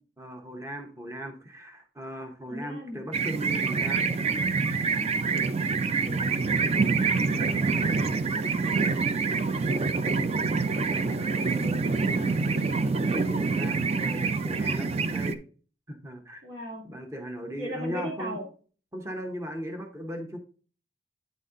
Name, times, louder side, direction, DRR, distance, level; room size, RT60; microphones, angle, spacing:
voice 1, 0.2-4.1 7.3-8.3 12.9-15.4 15.9-16.4 16.8-18.4 18.9-20.4, equal, 15° right, 4 dB, 0.8 m, -38 dB
voice 2, 2.5-3.0 6.0-6.6 10.9-12.6 16.4-16.8 17.6-18.5, equal, 75° right, 0 dB, 2.2 m, -38 dB
sound 1, 3.1-15.4, right 4 dB, 35° right, 0.4 m, -26 dB
9.2 x 4.1 x 3.6 m, 0.39 s
head